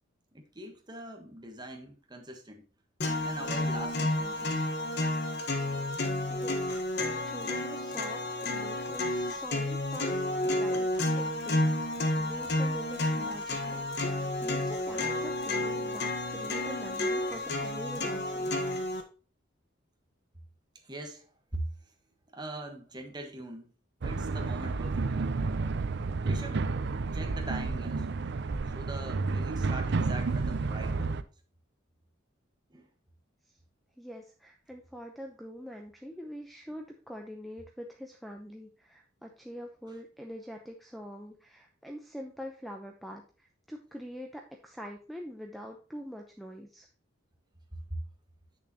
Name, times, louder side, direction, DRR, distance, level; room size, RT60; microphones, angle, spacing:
voice 1, 0.3-2.7 3.2-4.6 20.7-21.3 21.5-21.9 22.3-23.7 24.0-25.3 26.2-26.7 27.0-28.1 28.7-31.2 32.7-32.9 47.9-48.0, right 1 dB, 20° right, 1.4 m, -42 dB
sound 1, 3.0-19.0, left 1 dB, 55° left, 1.4 m, -31 dB
voice 2, 6.3-6.7 7.0-10.1 10.4-10.9 11.1-18.6 34.0-46.9, equal, ahead, 0.7 m, -44 dB
sound 2, 24.0-31.2, right 3 dB, 60° right, 0.5 m, -31 dB
8.4 x 6.8 x 2.9 m
head